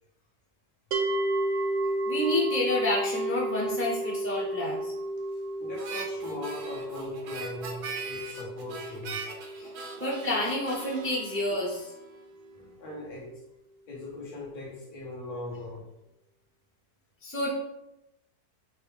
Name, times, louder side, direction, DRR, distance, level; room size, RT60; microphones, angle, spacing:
sound 1, 0.9-12.1, right 1 dB, 65° right, 0.9 m, -33 dB
voice 1, 2.1-4.9 10.0-11.9 17.2-17.5, left 1 dB, 15° left, -5 dB, 0.5 m, -29 dB
voice 2, 5.6-9.2 12.5-13.3 13.9-15.9, left 2 dB, 75° left, -3 dB, 1.6 m, -40 dB
Harmonica, 5.8-12.2, right 4 dB, 85° right, 1.2 m, -41 dB
4.5 x 3.3 x 3.3 m, 0.89 s
omnidirectional pair, 1.6 m